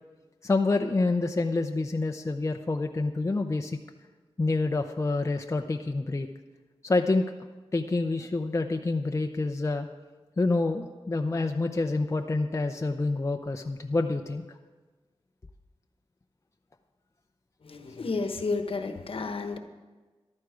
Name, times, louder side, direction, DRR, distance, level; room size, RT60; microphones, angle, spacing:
voice 1, 0.4-3.8 4.4-6.3 6.8-7.2 7.7-9.9 10.4-14.4, left 3 dB, 30° left, 4 dB, 0.6 m, -27 dB
voice 2, 17.6-19.6, left 3 dB, 60° left, 7 dB, 1.1 m, -31 dB
14.0 x 12.0 x 5.0 m, 1.3 s
wide cardioid pair, 105°, 10 cm